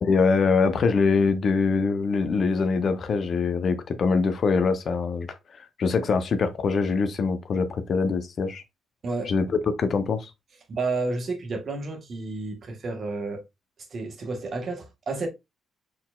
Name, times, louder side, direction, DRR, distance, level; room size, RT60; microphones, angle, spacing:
voice 1, 0.0-8.6 9.3-10.3, left 4 dB, 50° left, 0.6 m, -24 dB
voice 2, 9.0-9.3 10.7-13.4 13.9-15.3, right 3 dB, 50° right, 1.3 m, -31 dB
4.4 x 3.8 x 2.3 m
cardioid pair, 90°, 0 cm